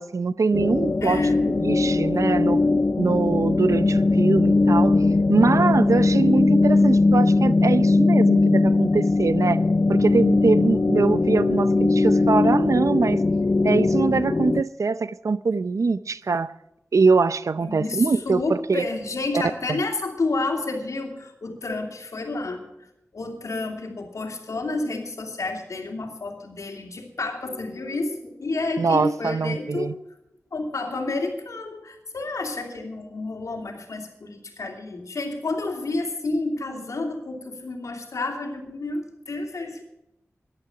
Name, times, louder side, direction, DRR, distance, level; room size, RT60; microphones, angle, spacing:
voice 1, 0.0-1.2 1.5-2.6 3.0-5.0 5.3-9.6 9.9-13.2 13.6-16.5 16.9-18.8 28.8-29.9, right 4 dB, 80° right, 0.6 m, -23 dB
sound 1, 0.5-14.6, left 3 dB, 45° left, 0.5 m, -20 dB
voice 2, 1.0-1.4 17.6-22.9 23.1-30.1 30.5-39.8, left 2 dB, 85° left, 2.8 m, -30 dB
14.5 x 11.5 x 5.9 m
cardioid pair, 45°, 5 cm